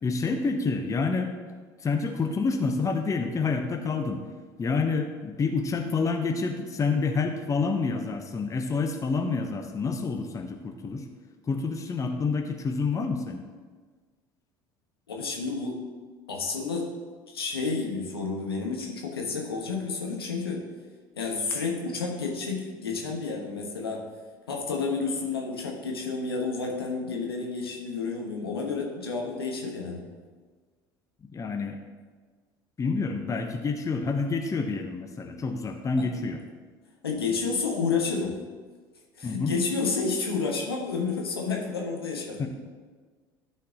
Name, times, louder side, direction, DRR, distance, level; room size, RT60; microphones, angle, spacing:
voice 1, 0.0-1.3 1.8-4.2 4.6-11.1 11.5-13.4 31.3-31.8 32.8-36.4 39.2-39.5 42.4-42.5, left 4 dB, 25° left, 5 dB, 0.9 m, -28 dB
voice 2, 15.1-15.8 16.3-16.9 17.3-20.6 21.1-24.0 24.5-30.0 36.0-36.1 37.0-38.4 39.2-42.5, left 4 dB, 85° left, 0 dB, 1.2 m, -30 dB
12.0 x 4.6 x 3.8 m, 1.5 s
hypercardioid pair, 65°, 12 cm